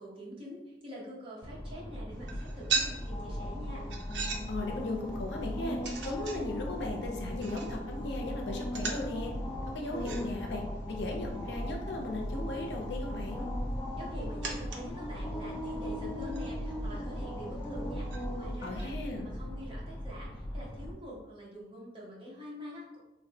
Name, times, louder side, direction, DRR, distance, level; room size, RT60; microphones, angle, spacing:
voice 1, 0.0-3.8 14.0-23.0, equal, 30° right, -5 dB, 0.7 m, -46 dB
sound 1, 1.4-20.9, equal, 15° left, 0.3 m, -38 dB
sound 2, 2.1-18.9, right 5 dB, 75° right, 0.4 m, -42 dB
voice 2, 4.5-5.8 6.0-9.3 9.7-13.5 18.6-19.3, left 2 dB, 80° left, 1 dB, 0.5 m, -37 dB
3.2 x 2.1 x 2.7 m, 0.95 s
head